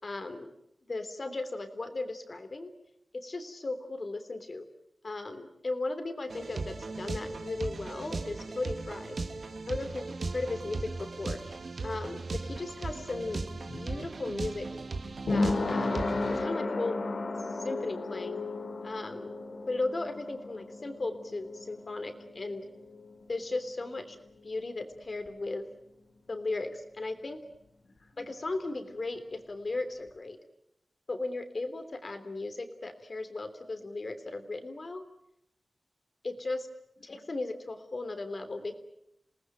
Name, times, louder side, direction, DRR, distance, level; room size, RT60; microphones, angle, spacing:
voice 1, 0.0-0.5 0.9-2.7 3.1-4.7 5.0-9.2 9.7-10.1 10.3-11.6 11.8-13.4 13.7-14.7 15.3-17.0 17.6-18.4 18.8-19.3 19.7-22.6 23.3-24.2 24.4-25.6 26.3-27.4 28.2-30.4 31.1-35.0 36.2-36.7 37.0-38.7, left 2 dB, 45° left, 9 dB, 3.2 m, -36 dB
sound 1, 6.3-16.5, right 3 dB, 65° right, 1.9 m, -38 dB
sound 2, 12.4-23.7 24.0-24.1, left 3 dB, 65° left, 2.7 m, -34 dB
28.0 x 19.0 x 9.2 m, 0.80 s
wide cardioid pair, 85°, 0 cm